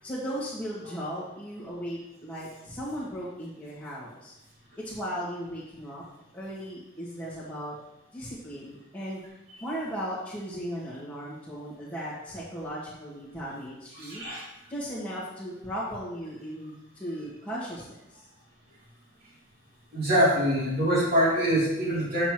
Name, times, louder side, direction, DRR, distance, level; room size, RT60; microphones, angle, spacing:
voice 1, 0.0-4.3 4.8-6.0 6.3-7.8 8.1-9.2 9.6-14.2 14.7-18.2, equal, 5° left, -12 dB, 1.8 m, -36 dB
voice 2, 13.9-14.4 19.9-22.3, equal, 45° right, -6 dB, 3.1 m, -24 dB
8.7 x 7.6 x 3.0 m, 0.95 s
head